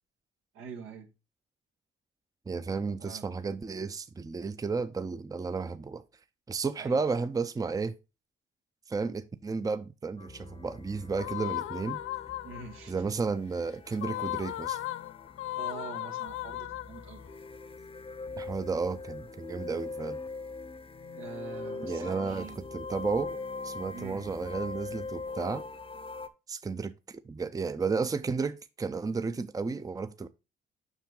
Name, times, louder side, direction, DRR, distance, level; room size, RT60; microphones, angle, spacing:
voice 1, 0.5-1.1 3.0-3.3 6.8-7.3 12.4-13.0 15.6-17.2 21.1-22.6 23.9-24.3, right 6 dB, 90° right, 1.7 m, -44 dB
voice 2, 2.5-6.0 6.5-7.9 8.9-12.0 12.9-14.8 18.4-20.2 21.8-22.5 22.7-23.4 23.6-25.6 26.5-30.3, right 4 dB, 15° right, 0.5 m, -33 dB
sound 1, 10.2-26.3, left 3 dB, 25° left, 0.7 m, -42 dB
sound 2, 11.2-12.9 13.9-17.3, left 15 dB, 75° left, 0.4 m, -36 dB
7.3 x 5.7 x 3.8 m
cardioid pair, 95°, 21 cm